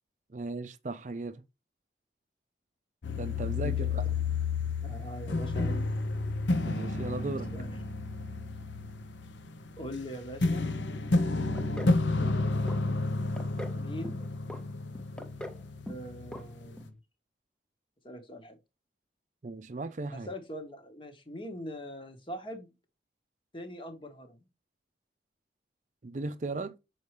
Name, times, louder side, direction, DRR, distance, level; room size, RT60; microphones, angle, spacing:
voice 1, 0.3-1.4 3.2-4.1 6.7-7.5 19.4-20.3 26.0-26.7, right 3 dB, 45° right, 0.5 m, -36 dB
sound 1, 3.0-16.7, left 3 dB, 90° left, 0.8 m, -31 dB
voice 2, 3.4-4.0 4.8-5.9 7.1-7.7 9.8-10.7 13.7-14.2 15.8-17.0 18.0-18.6 20.1-22.7 23.5-24.5, equal, 30° left, 1.2 m, -42 dB
sound 2, 11.5-12.0 12.2-12.8 13.1-13.8 14.0-14.6 14.9-15.6 15.9-16.1 16.3-16.4 16.8-16.9, left 1 dB, 5° left, 0.7 m, -41 dB
6.8 x 4.6 x 3.2 m
head